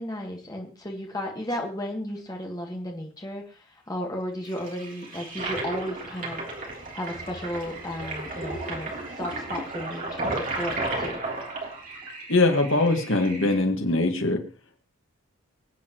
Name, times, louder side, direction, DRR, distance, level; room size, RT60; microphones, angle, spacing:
voice 1, 0.0-6.4 6.9-11.2, equal, 15° left, 0 dB, 1.7 m, -34 dB
Toilet flush, 4.5-13.6, right 2 dB, 40° right, 3.4 m, -34 dB
voice 2, 12.3-14.4, left 2 dB, 60° left, 4 dB, 1.8 m, -22 dB
24.5 x 8.5 x 3.1 m, 0.36 s
head